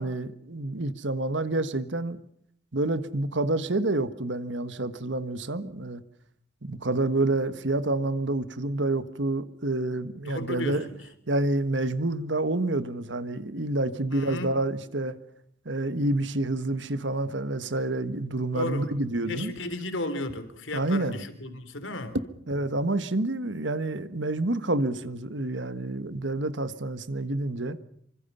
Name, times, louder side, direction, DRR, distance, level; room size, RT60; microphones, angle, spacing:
voice 1, 0.0-2.2 2.7-6.0 6.6-10.9 11.3-15.2 15.6-19.5 20.7-21.2 22.5-27.8, right 2 dB, 70° right, 1.5 m, -28 dB
voice 2, 10.2-11.0 14.1-14.5 18.5-18.9 19.3-22.2, left 1 dB, 90° left, 3.4 m, -34 dB
27.5 x 24.5 x 5.6 m
head